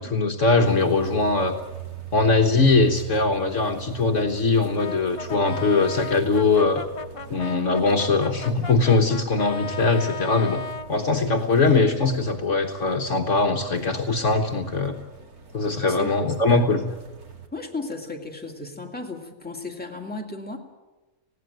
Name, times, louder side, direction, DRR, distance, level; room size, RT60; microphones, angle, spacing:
voice 1, 0.0-1.6 2.1-6.8 7.3-10.6 10.9-15.0 15.5-16.8, left 3 dB, 60° left, 4 dB, 1.5 m, -21 dB
River Thames (Water & Boat), 0.6-17.5, right 9 dB, 85° right, 2.6 m, -42 dB
Brass instrument, 4.8-10.9, left 4 dB, 35° left, 0.6 m, -36 dB
voice 2, 15.9-16.7 17.5-20.6, left 2 dB, 5° left, 1 dB, 2.4 m, -35 dB
19.5 x 16.0 x 9.2 m, 1.1 s
omnidirectional pair, 1.5 m